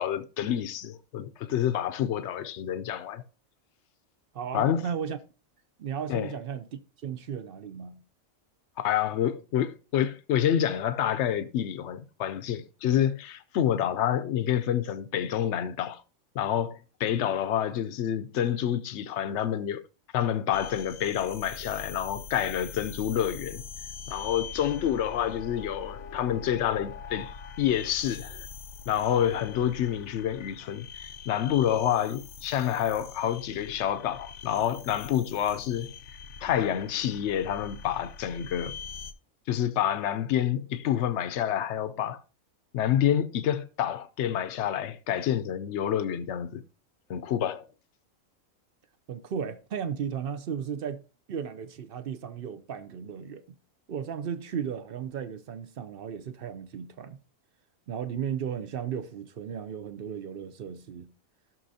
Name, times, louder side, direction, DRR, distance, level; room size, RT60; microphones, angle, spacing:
voice 1, 0.0-3.2 4.5-4.9 6.1-6.3 8.8-16.0 16.3-19.8 20.1-23.6 24.1-28.5 28.9-35.9 36.4-38.8 39.5-42.2 42.7-46.6 47.1-47.6, left 10 dB, 65° left, 0.8 m, -28 dB
voice 2, 4.3-5.2 5.8-8.0 49.1-51.0 51.3-53.6 53.9-57.2 57.9-61.1, right 7 dB, 55° right, 0.7 m, -35 dB
sound 1, 20.5-39.1, left 6 dB, 80° left, 1.1 m, -43 dB
15.0 x 6.2 x 2.7 m
omnidirectional pair, 1.4 m